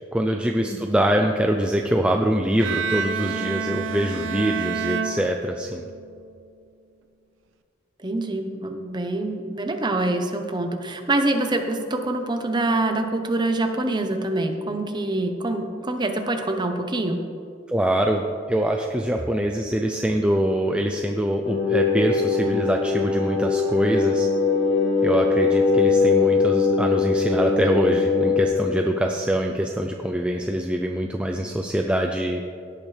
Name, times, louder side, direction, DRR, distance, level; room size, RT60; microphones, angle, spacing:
voice 1, 0.1-5.9 17.7-24.3 25.0-32.4, right 1 dB, 5° right, 2 dB, 0.4 m, -24 dB
Bowed string instrument, 2.6-5.9, right 5 dB, 80° right, 0.6 m, -28 dB
voice 2, 8.0-17.2, right 2 dB, 20° right, 5 dB, 0.8 m, -25 dB
sound 1, 21.4-28.5, left 4 dB, 65° left, 2.9 m, -21 dB
17.0 x 8.7 x 3.3 m, 2.4 s
head